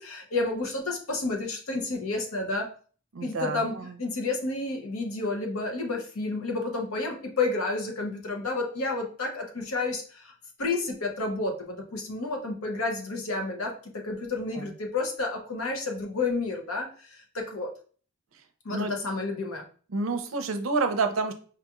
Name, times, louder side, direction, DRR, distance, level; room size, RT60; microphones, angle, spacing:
voice 1, 0.0-2.7 3.2-10.3 10.6-17.7 18.6-19.6, left 3 dB, 80° left, 3 dB, 0.8 m, -30 dB
voice 2, 3.1-3.9 14.6-14.7 18.7-18.9 19.9-21.3, right 4 dB, 70° right, 8 dB, 0.5 m, -28 dB
4.8 x 2.9 x 2.3 m, 0.42 s
head